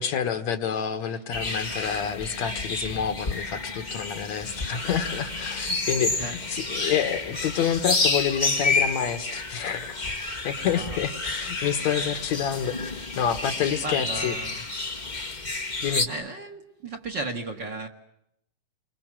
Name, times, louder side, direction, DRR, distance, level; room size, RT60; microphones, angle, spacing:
voice 1, 0.0-10.1 10.4-14.3 15.8-16.1, left 8 dB, 65° left, 10 dB, 2.4 m, -28 dB
sound 1, 1.3-16.1, left 3 dB, 30° left, 0.8 m, -30 dB
voice 2, 10.6-11.0 11.9-12.1 13.8-14.6 16.1-17.9, right 2 dB, 40° right, 4 dB, 1.9 m, -35 dB
29.5 x 24.0 x 7.5 m, 0.77 s
omnidirectional pair, 3.7 m